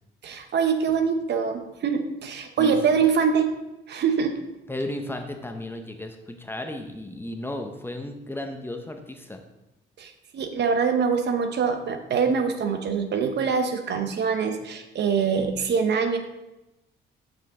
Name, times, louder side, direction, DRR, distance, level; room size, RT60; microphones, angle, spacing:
voice 1, 0.2-3.5 3.9-4.3 10.0-16.2, right 6 dB, 60° right, 6 dB, 0.8 m, -24 dB
voice 2, 4.7-9.4, left 1 dB, 10° left, 4 dB, 0.7 m, -34 dB
6.0 x 5.4 x 3.7 m, 0.95 s
cardioid pair, 90°, 20 cm